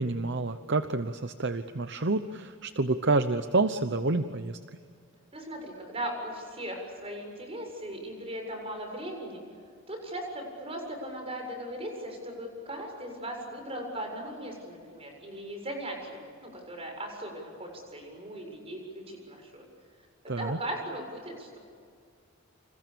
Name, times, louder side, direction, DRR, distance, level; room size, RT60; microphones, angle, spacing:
voice 1, 0.0-4.6 20.3-20.6, right 3 dB, 55° right, 10 dB, 0.9 m, -28 dB
voice 2, 5.3-9.4 9.9-19.6 20.2-21.6, right 1 dB, 30° right, 3 dB, 7.3 m, -38 dB
30.0 x 27.5 x 7.0 m, 2.2 s
head